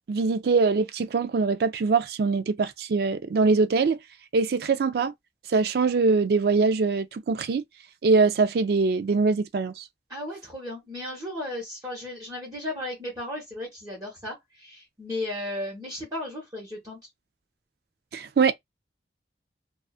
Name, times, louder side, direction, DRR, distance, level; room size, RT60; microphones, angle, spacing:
voice 1, 0.1-4.0 4.3-5.1 5.5-7.6 8.0-9.8 18.1-18.5, right 4 dB, 60° right, 0.4 m, -23 dB
voice 2, 10.1-17.0, left 1 dB, 20° right, 1.2 m, -35 dB
2.5 x 2.4 x 2.4 m
head